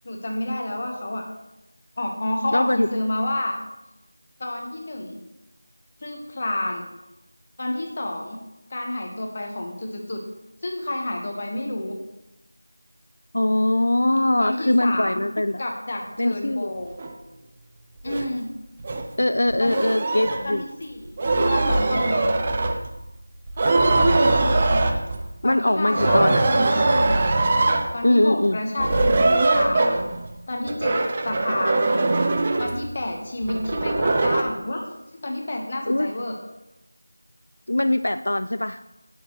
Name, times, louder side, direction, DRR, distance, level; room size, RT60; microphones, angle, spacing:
voice 1, 0.0-1.2 2.0-3.6 4.4-5.2 6.0-6.9 7.6-8.4 8.7-10.2 10.6-12.0 14.4-15.2 15.6-17.0 18.0-18.5 19.6-19.8 20.4-22.2 25.4-27.2 27.9-30.0 30.5-31.0 31.2-31.9 32.6-34.8 35.1-36.4, left 1 dB, 20° left, 1 dB, 1.2 m, -29 dB
voice 2, 2.5-2.9 13.3-15.6 16.2-16.7 19.2-20.6 25.4-26.5 28.0-28.6 35.9-36.1 37.7-38.8, left 1 dB, 60° left, 10 dB, 0.4 m, -21 dB
sound 1, 17.0-17.1 18.1-18.3 18.8-19.1 19.5-20.5 21.1-23.0 23.5-25.3 25.9-27.9 28.8-30.3 30.7-32.9 33.4-34.4, right 2 dB, 15° right, 0.4 m, -21 dB
17.5 x 6.7 x 3.2 m, 0.94 s
figure-of-eight pair, 180°, 0 cm